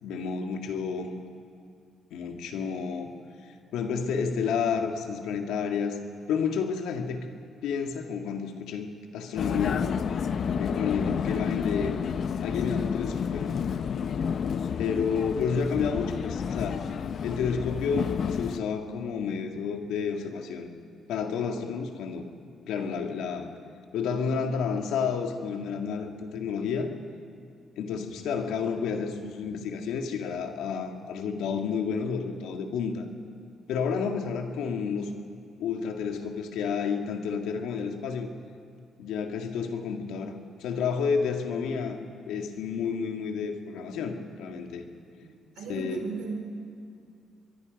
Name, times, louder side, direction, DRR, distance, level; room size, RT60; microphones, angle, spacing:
voice 1, 0.0-1.1 2.1-3.1 3.4-6.0 6.3-7.3 7.6-8.9 9.1-9.9 10.6-11.9 12.4-13.6 14.8-16.8 17.2-20.7 21.1-22.3 22.7-23.5 23.9-26.9 27.8-33.1 33.7-35.1 35.6-38.3 39.0-42.0 42.3-44.9 45.7-46.1, left 6 dB, 85° left, 4 dB, 2.0 m, -30 dB
Vehicle, 9.4-18.6, left 7 dB, 55° left, 0.7 m, -30 dB
voice 2, 45.2-46.4, right 4 dB, 85° right, 3 dB, 4.1 m, -36 dB
24.5 x 22.0 x 5.3 m, 2.3 s
cardioid pair, 90°, 0 cm